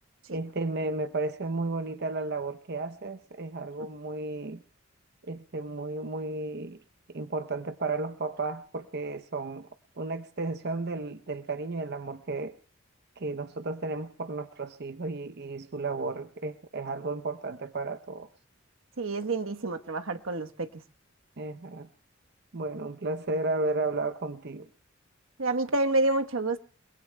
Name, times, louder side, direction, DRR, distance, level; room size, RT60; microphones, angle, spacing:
voice 1, 0.3-4.6 5.2-6.8 7.1-9.7 10.0-12.5 13.2-18.3 21.4-21.9 22.5-24.7, right 3 dB, 55° right, 0.7 m, -33 dB
voice 2, 19.0-20.7 25.4-26.6, right 2 dB, 85° right, 1.2 m, -28 dB
29.5 x 20.5 x 2.3 m
head